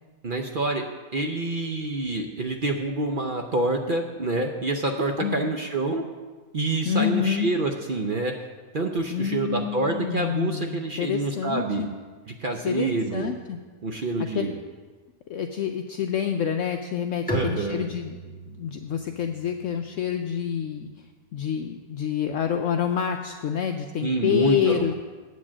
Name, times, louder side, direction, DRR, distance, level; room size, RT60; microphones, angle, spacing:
voice 1, 0.2-0.9 1.1-6.1 6.5-8.4 8.7-11.8 12.4-13.3 13.8-14.5 17.3-17.9 24.0-24.9, right 2 dB, 50° right, 3 dB, 0.6 m, -27 dB
voice 2, 6.8-7.5 9.1-11.9 12.6-13.6 14.2-14.6 15.3-24.9, left 8 dB, 65° left, 4 dB, 0.8 m, -28 dB
Bowed string instrument, 17.3-20.8, right 1 dB, 5° left, 1.0 m, -37 dB
8.2 x 7.4 x 7.3 m, 1.4 s
omnidirectional pair, 1.6 m